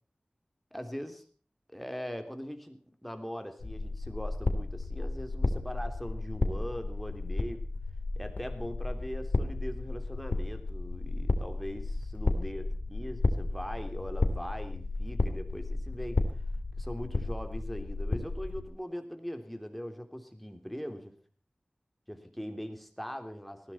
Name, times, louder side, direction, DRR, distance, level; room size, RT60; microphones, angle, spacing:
voice 1, 0.7-1.2 1.7-7.6 8.2-16.2 16.8-21.1 22.1-23.7, equal, ahead, 6 dB, 3.2 m, -41 dB
sound 1, 3.6-18.6, left 2 dB, 80° left, 2.4 m, -33 dB
19.0 x 15.5 x 4.4 m, 0.43 s
wide cardioid pair, 65°, 3 cm